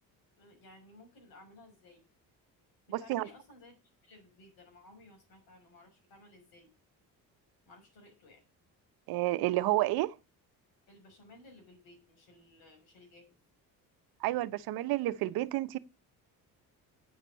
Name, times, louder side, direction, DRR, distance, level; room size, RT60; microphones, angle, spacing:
voice 1, 0.4-2.1 2.9-3.7 4.0-6.7 7.6-8.4 10.9-13.4, left 2 dB, 75° left, 6.3 m, -57 dB
voice 2, 2.9-3.3 9.1-10.1 14.2-15.8, right 16 dB, 85° right, 0.8 m, -30 dB
8.7 x 7.0 x 8.6 m
cardioid pair, 145°, 36 cm